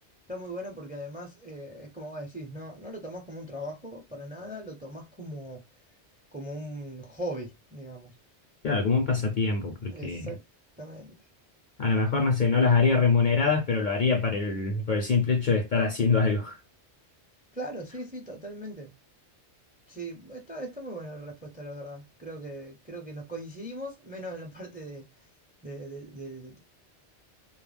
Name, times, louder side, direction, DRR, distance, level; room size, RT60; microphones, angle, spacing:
voice 1, 0.3-5.6 6.3-8.1 9.9-10.4 10.8-11.1 17.5-18.9 19.9-25.1 25.6-26.6, right 1 dB, 10° right, 0.5 m, -39 dB
voice 2, 8.6-10.3 11.8-16.6, left 4 dB, 55° left, 0.6 m, -24 dB
2.2 x 2.0 x 3.2 m
omnidirectional pair, 1.2 m